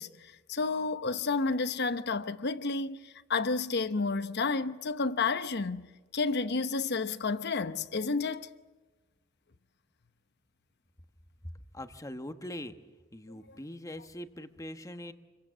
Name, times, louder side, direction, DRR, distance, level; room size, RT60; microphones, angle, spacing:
voice 1, 0.0-8.5 13.5-13.6, left 4 dB, 60° left, 1.0 m, -31 dB
voice 2, 11.7-12.7 13.1-15.1, left 1 dB, 15° left, 1.2 m, -42 dB
28.5 x 23.5 x 7.5 m
head